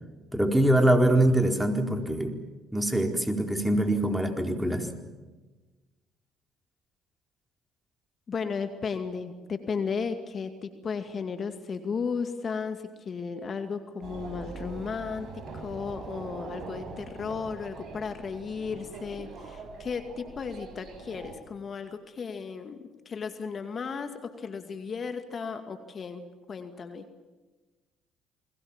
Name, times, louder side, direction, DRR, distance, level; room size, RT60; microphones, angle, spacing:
voice 1, 0.3-2.3 2.7-4.9, right 1 dB, 5° right, 4 dB, 4.2 m, -23 dB
voice 2, 8.3-27.1, left 5 dB, 45° left, 8 dB, 2.3 m, -35 dB
sound 1, 14.0-21.4, right 3 dB, 50° right, 7.6 m, -42 dB
29.5 x 22.0 x 7.4 m, 1.2 s
hypercardioid pair, 60°, 0 cm